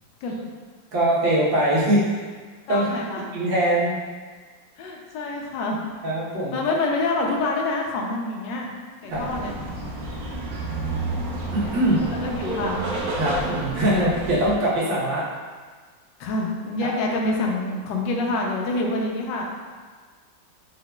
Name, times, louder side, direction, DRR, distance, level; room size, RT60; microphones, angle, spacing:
voice 1, 0.9-2.2 2.7-2.9 3.3-4.0 6.0-6.6 9.0-9.2 11.5-12.0 13.2-15.3 16.8-17.0, right 1 dB, 85° right, -6 dB, 1.8 m, -22 dB
voice 2, 2.7-3.2 4.8-5.8 6.5-8.7 9.0-9.5 11.6-11.8 12.0-12.8 16.2-19.4, left 2 dB, 75° left, 0 dB, 1.3 m, -26 dB
sound 1, 9.1-14.6, right 2 dB, 60° right, 1.1 m, -30 dB
4.8 x 3.9 x 2.2 m, 1.5 s
omnidirectional pair, 2.1 m